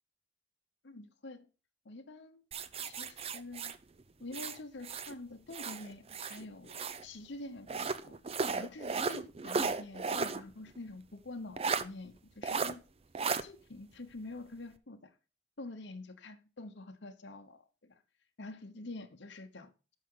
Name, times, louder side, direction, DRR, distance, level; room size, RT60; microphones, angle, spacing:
voice 1, 0.8-1.5 1.8-2.4 2.8-3.7 4.2-8.2 8.5-12.8 13.4-15.1 15.6-17.9 18.4-19.7, left 2 dB, 60° left, 1.0 m, -47 dB
sound 1, 2.5-5.1 5.5-7.0 7.7-10.4 10.7-10.8 11.6-11.8 12.4-12.7 13.1-13.4, right 4 dB, 30° right, 0.5 m, -35 dB
12.5 x 5.7 x 3.8 m
head